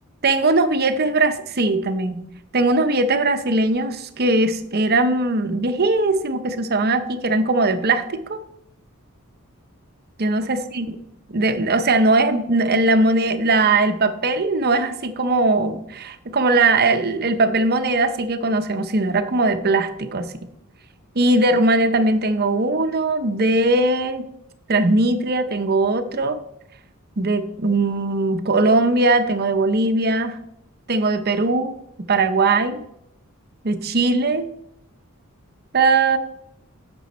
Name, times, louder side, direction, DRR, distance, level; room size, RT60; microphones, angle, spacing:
voice 1, 0.2-2.2 2.5-8.4 10.2-11.0 11.3-20.3 21.2-24.3 24.7-26.4 27.2-30.4 30.9-31.7 32.1-32.8 33.6-34.5 35.7-36.2, right 2 dB, 45° right, 10 dB, 0.7 m, -20 dB
9.9 x 6.9 x 4.2 m, 0.77 s
head